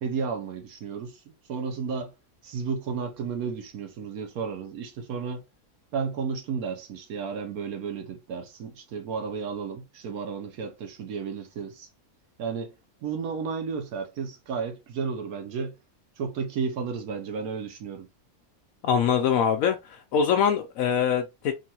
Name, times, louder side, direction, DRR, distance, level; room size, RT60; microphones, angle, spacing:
voice 1, 0.0-2.1 2.4-5.4 5.9-11.9 12.4-12.7 13.0-15.7 16.2-18.1, right 5 dB, 75° right, 1.1 m, -33 dB
voice 2, 18.8-21.5, left 7 dB, 70° left, 0.9 m, -23 dB
3.8 x 2.5 x 2.8 m
omnidirectional pair, 1.6 m